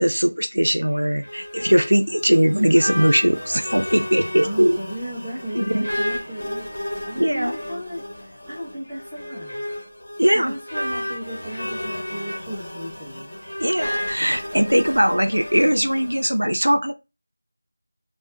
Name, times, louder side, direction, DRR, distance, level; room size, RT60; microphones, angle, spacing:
voice 1, 0.0-4.8 5.5-5.9 7.2-7.6 10.2-10.5 13.6-16.9, equal, 80° right, 0.7 m, -20 dB
sound 1, 0.9-16.2, left 1 dB, 50° left, 1.5 m, -32 dB
voice 2, 4.4-9.6 10.3-13.3, right 1 dB, ahead, 0.8 m, -35 dB
5.5 x 2.4 x 2.6 m
figure-of-eight pair, 170°, 0 cm